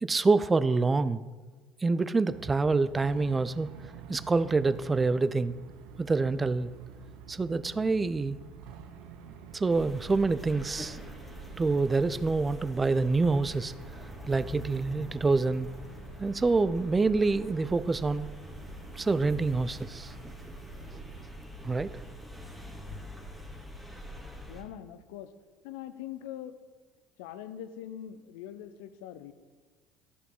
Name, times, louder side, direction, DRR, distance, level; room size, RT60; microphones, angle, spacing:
voice 1, 0.0-1.2 1.8-3.7 4.1-5.5 6.0-6.7 7.3-8.4 9.5-11.0 11.6-13.7 14.3-15.7 16.2-18.3 19.0-20.1 21.6-21.9, right 3 dB, 20° right, 15 dB, 0.4 m, -26 dB
sound 1, 2.3-21.3, right 7 dB, 65° right, 0.7 m, -49 dB
sound 2, 9.7-24.6, equal, ahead, 1.9 m, -45 dB
voice 2, 24.5-25.3 25.6-26.6 27.2-29.3, left 11 dB, 70° left, 12 dB, 0.5 m, -42 dB
12.5 x 5.4 x 3.8 m, 1.4 s
figure-of-eight pair, 60°, 0 cm